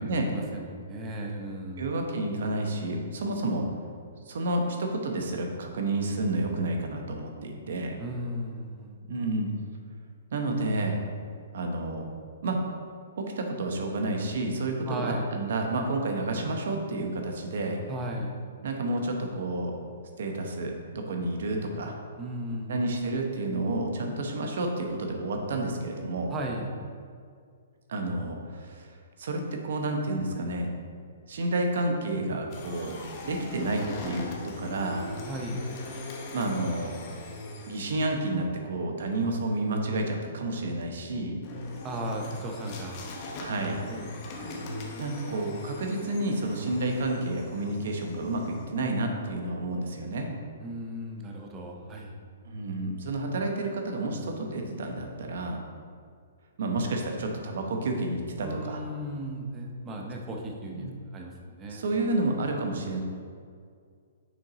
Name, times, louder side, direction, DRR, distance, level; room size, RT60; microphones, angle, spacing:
voice 1, 0.0-1.9 8.0-9.0 14.9-15.3 17.9-18.3 22.2-22.9 26.3-26.7 35.3-35.6 41.8-43.0 43.9-44.1 50.6-52.2 58.4-62.1, equal, 15° right, 0 dB, 0.6 m, -36 dB
voice 2, 1.8-3.7 4.3-8.0 9.1-9.5 10.3-11.0 11.5-12.1 12.4-12.6 13.2-17.8 18.6-19.7 20.2-22.0 22.7-26.3 27.9-28.9 29.2-30.7 31.3-33.0 33.2-35.0 36.3-36.9 37.7-41.3 43.4-43.8 45.0-50.3 52.5-55.6 56.6-58.8 60.7-60.9 61.7-63.0, right 2 dB, 60° right, 2 dB, 1.0 m, -30 dB
sound 1, 32.5-38.3 41.4-48.6, left 2 dB, 30° left, 0.7 m, -40 dB
6.1 x 4.5 x 3.9 m, 2.1 s
hypercardioid pair, 165°, 0 cm